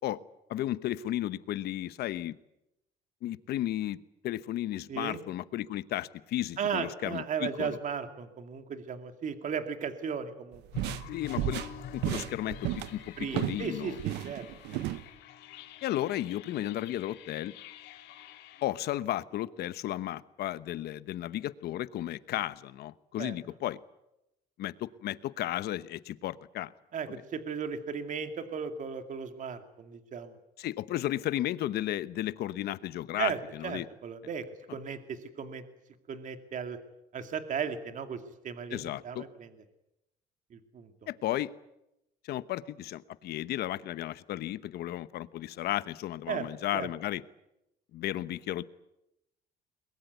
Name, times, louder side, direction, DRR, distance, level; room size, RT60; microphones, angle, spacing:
voice 1, 0.5-2.4 3.2-7.8 11.1-11.6 11.9-14.0 15.8-17.5 18.6-23.8 24.6-26.7 27.1-27.2 30.6-33.9 38.7-39.3 41.1-41.6 42.2-47.2 47.9-48.6, left 13 dB, 70° left, 15 dB, 1.1 m, -34 dB
voice 2, 4.9-5.2 6.6-10.6 13.2-14.5 23.2-23.4 26.9-30.4 33.2-35.6 36.1-36.8 37.1-39.5 40.5-40.9 46.3-46.5 46.7-46.9, right 7 dB, 50° right, 8 dB, 2.4 m, -36 dB
sound 1, 10.5-13.7 14.0-15.0, right 14 dB, 85° right, 1.0 m, -33 dB
sound 2, 10.7-18.6, left 8 dB, 90° left, 2.6 m, -47 dB
22.0 x 21.5 x 9.4 m, 0.89 s
cardioid pair, 110°, 17 cm